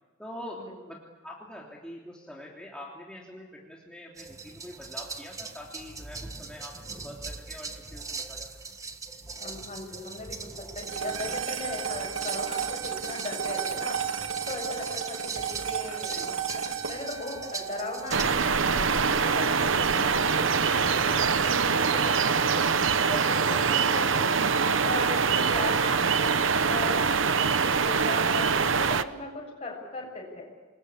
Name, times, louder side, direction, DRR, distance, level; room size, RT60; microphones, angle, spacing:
voice 1, 0.2-1.0 1.2-8.5 16.1-16.5 24.0-24.3, left 1 dB, 5° left, -3 dB, 3.1 m, -44 dB
sound 1, 4.2-18.2, right 4 dB, 15° right, 1.5 m, -41 dB
voice 2, 9.4-10.5 10.7-14.0 14.5-22.6 23.1-24.5 24.8-26.4 26.7-28.5 28.7-30.5, left 2 dB, 30° left, -1 dB, 7.5 m, -38 dB
sound 2, 10.8-19.3, right 7 dB, 85° right, 1.8 m, -34 dB
sound 3, 18.1-29.0, right 5 dB, 65° right, 0.9 m, -24 dB
28.0 x 21.0 x 8.5 m, 1.3 s
head